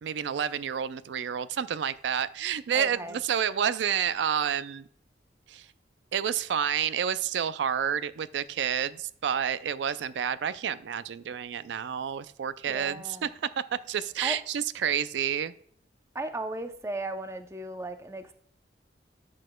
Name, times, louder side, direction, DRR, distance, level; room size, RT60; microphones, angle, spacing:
voice 1, 0.0-4.9 5.5-5.7 6.1-13.3 13.7-15.5, right 8 dB, 85° right, 16 dB, 0.4 m, -29 dB
voice 2, 2.7-3.2 12.7-13.3 14.2-14.4 16.1-18.3, right 2 dB, 15° right, 8 dB, 0.5 m, -36 dB
10.5 x 6.3 x 2.2 m, 0.65 s
head